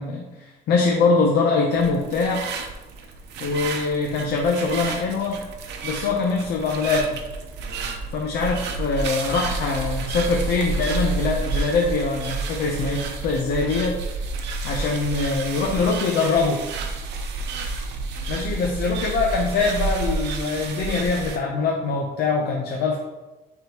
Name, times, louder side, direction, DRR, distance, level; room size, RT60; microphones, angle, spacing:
voice 1, 0.0-2.5 3.4-5.4 5.8-7.2 8.1-14.0 14.6-16.6 18.3-23.0, left 4 dB, 70° left, 0 dB, 0.7 m, -23 dB
sound 1, 1.7-21.4, right 4 dB, 85° right, 0.8 m, -30 dB
9.1 x 3.6 x 2.9 m, 1.1 s
cardioid pair, 175°, 17 cm